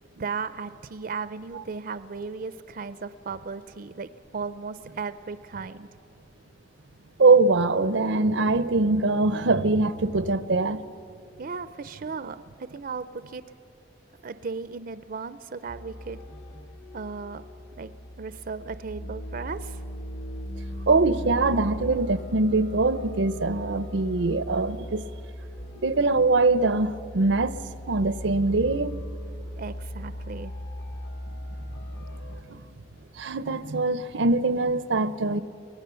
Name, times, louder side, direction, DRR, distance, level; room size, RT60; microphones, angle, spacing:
voice 1, 0.2-5.9 11.4-13.4 14.2-16.2 16.9-17.4 17.8-19.8 29.6-30.5, right 5 dB, 50° right, 0.5 m, -36 dB
voice 2, 7.2-10.8 20.9-25.0 25.8-27.6 27.9-29.0 32.5-32.6 33.2-35.4, right 3 dB, 85° right, 0.7 m, -23 dB
sound 1, 15.7-32.4, equal, 65° left, 1.9 m, -38 dB
24.0 x 18.0 x 6.9 m
head